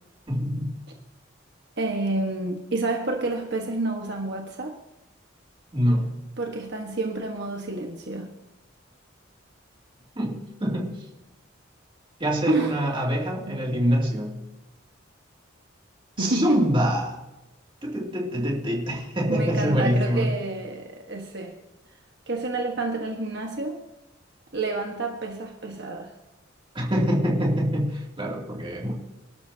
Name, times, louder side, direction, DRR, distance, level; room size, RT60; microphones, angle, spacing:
voice 1, 0.3-0.7 5.7-6.1 10.2-11.0 12.2-14.4 16.2-17.2 17.8-20.3 26.7-28.9, equal, 25° right, -2 dB, 2.6 m, -25 dB
voice 2, 1.8-4.8 6.4-8.3 12.5-12.7 13.5-13.6 16.2-16.7 19.3-21.6 22.3-23.8 24.5-26.1, right 2 dB, 55° right, 1 dB, 1.4 m, -28 dB
23.5 x 12.5 x 2.8 m, 0.97 s
head